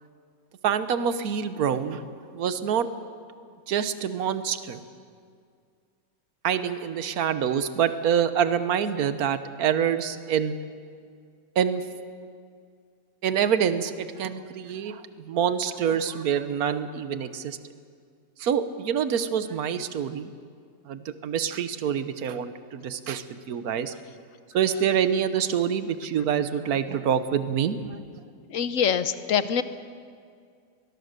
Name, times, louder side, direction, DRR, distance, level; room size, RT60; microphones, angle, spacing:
voice 1, 0.6-2.9 3.7-4.8 6.4-10.6 11.5-11.8 13.2-17.6 18.4-20.3 20.9-24.0 24.5-28.0, right 8 dB, 60° right, 11 dB, 1.4 m, -26 dB
voice 2, 28.5-29.6, left 8 dB, 60° left, 12 dB, 1.0 m, -24 dB
23.5 x 21.0 x 6.7 m, 2.2 s
omnidirectional pair, 1.8 m